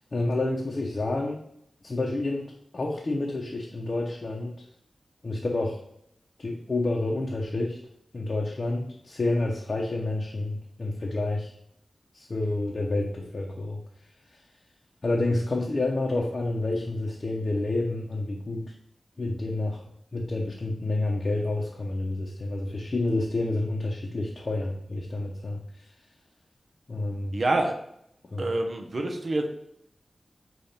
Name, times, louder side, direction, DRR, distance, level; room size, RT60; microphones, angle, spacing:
voice 1, 0.1-1.4 1.8-4.5 5.2-5.8 6.4-7.8 8.1-11.5 12.1-13.8 15.0-18.7 19.2-19.8 20.1-25.6 26.9-27.4 28.3-28.5, left 2 dB, 55° left, -3 dB, 0.7 m, -29 dB
voice 2, 27.3-27.7 28.4-29.5, right 2 dB, 60° right, 3 dB, 0.8 m, -26 dB
5.1 x 2.4 x 4.2 m, 0.72 s
cardioid pair, 50°, 0 cm